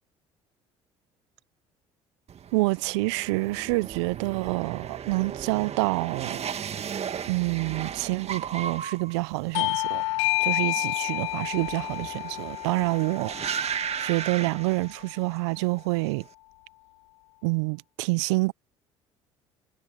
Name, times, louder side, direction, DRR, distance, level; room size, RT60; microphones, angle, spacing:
sound 1, 2.3-15.4 15.7-16.2, right 8 dB, 45° right, 2.0 m, -36 dB
voice 1, 2.5-6.4 7.3-10.0 10.4-13.4 14.0-16.2 17.4-18.5, right 25 dB, 80° right, 0.6 m, -27 dB
Bell / Doorbell, 9.5-14.6, left 23 dB, 85° left, 0.4 m, -30 dB
hypercardioid pair, 60°, 15 cm